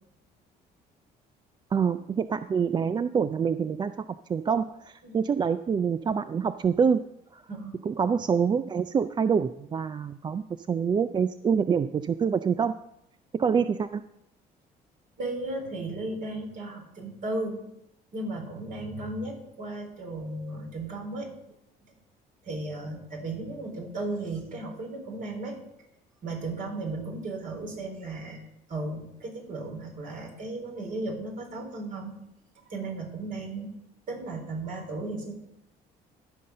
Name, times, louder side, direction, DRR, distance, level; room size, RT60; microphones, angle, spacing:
voice 1, 1.7-3.9 4.3-7.0 7.3-7.4 7.8-12.8 13.3-14.0, right 6 dB, 25° right, 12 dB, 0.3 m, -26 dB
voice 2, 15.2-17.6 18.1-21.3 22.4-25.6 26.2-32.2 32.6-33.8 34.1-35.4, right 2 dB, 55° right, 1 dB, 4.1 m, -35 dB
14.0 x 5.5 x 6.6 m, 0.83 s
cardioid pair, 110°, 17 cm